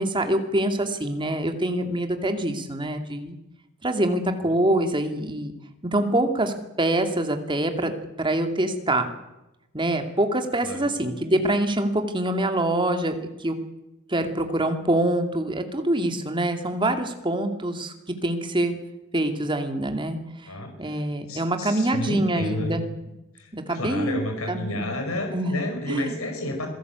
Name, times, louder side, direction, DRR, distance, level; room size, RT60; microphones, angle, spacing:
voice 1, 0.0-3.4 3.8-5.5 5.9-9.1 9.7-13.1 13.4-13.6 14.1-18.8 19.1-20.2 20.8-22.8 23.5-24.2 24.5-24.8 25.3-25.6 25.9-26.2, right 1 dB, 25° right, 6 dB, 2.5 m, -25 dB
voice 2, 20.5-21.0 21.3-22.7 23.3-26.7, left 1 dB, 85° left, 5 dB, 5.0 m, -31 dB
26.0 x 17.0 x 8.3 m, 0.95 s
head